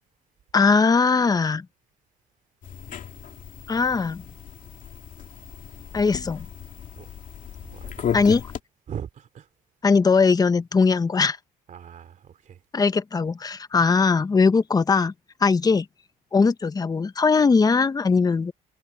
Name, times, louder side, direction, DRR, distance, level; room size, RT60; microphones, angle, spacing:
voice 1, 0.5-1.7 3.7-4.2 5.9-6.5 8.1-8.4 9.8-11.4 12.7-15.1 15.4-15.9 16.3-18.5, left 4 dB, 20° left, 0.9 m, -20 dB
sound 1, 2.6-8.6, left 9 dB, 50° left, 2.3 m, -35 dB
voice 2, 7.6-8.4 8.9-9.5 11.7-12.6, right 8 dB, 50° right, 2.8 m, -40 dB
cardioid pair, 110°, 17 cm